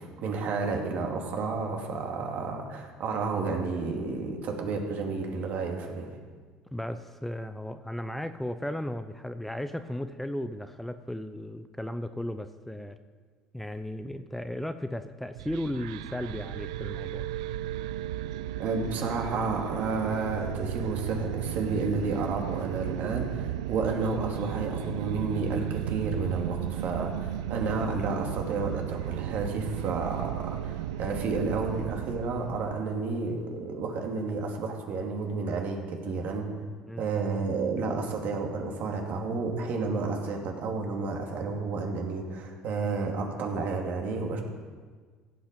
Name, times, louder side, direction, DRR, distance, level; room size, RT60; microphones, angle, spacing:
voice 1, 0.0-6.1 18.6-36.5 37.0-44.4, right 4 dB, 60° right, 2 dB, 2.5 m, -31 dB
voice 2, 6.7-13.0 13.5-17.3 36.9-37.1, left 1 dB, 5° left, 10 dB, 0.7 m, -35 dB
sound 1, 15.4-32.8, right 12 dB, 80° right, 0.4 m, -34 dB
16.0 x 7.9 x 5.3 m, 1.5 s
hypercardioid pair, 70°, 3 cm